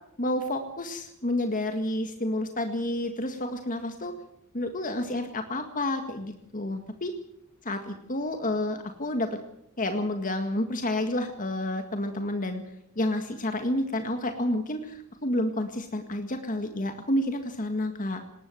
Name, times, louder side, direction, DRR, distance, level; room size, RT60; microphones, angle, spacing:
voice 1, 0.2-4.1 4.5-7.1 7.7-9.4 9.8-12.6 12.9-18.2, left 1 dB, 40° left, 6 dB, 1.8 m, -30 dB
20.0 x 18.5 x 7.7 m, 0.80 s
head